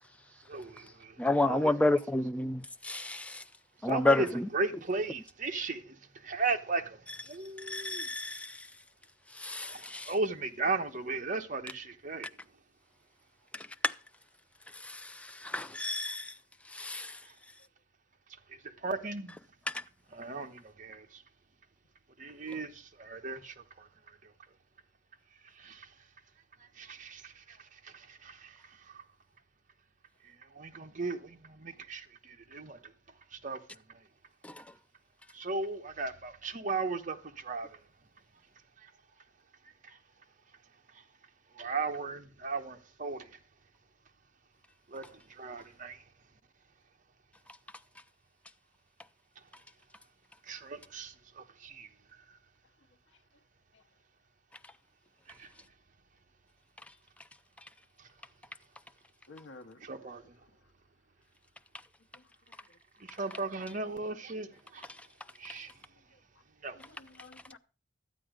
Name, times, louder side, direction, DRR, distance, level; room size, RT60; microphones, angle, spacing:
voice 1, 0.5-1.1 1.4-1.7 3.9-4.3 4.5-5.9 6.2-7.0 7.3-8.1 9.6-12.3 18.8-19.4 20.1-21.0 22.2-23.9 25.6-25.9 26.8-27.6 27.8-28.5 28.9-29.0 30.6-32.8 33.4-33.6 35.3-37.7 41.6-43.3 44.9-45.1 45.4-46.0 50.5-51.9 55.4-55.5 59.8-60.2 63.0-64.8 65.4-65.7 66.6-66.8, right 3 dB, 45° right, 1.1 m, -36 dB
voice 2, 1.2-3.4 3.8-4.5 7.7-8.6 9.4-10.1 13.8-13.9 14.8-15.1 15.4-16.3 16.7-17.1 19.7-19.8 34.4-34.5, left 2 dB, 5° left, 0.5 m, -30 dB
voice 3, 59.3-59.8 66.7-67.6, left 3 dB, 90° left, 0.9 m, -52 dB
12.5 x 9.0 x 5.0 m
head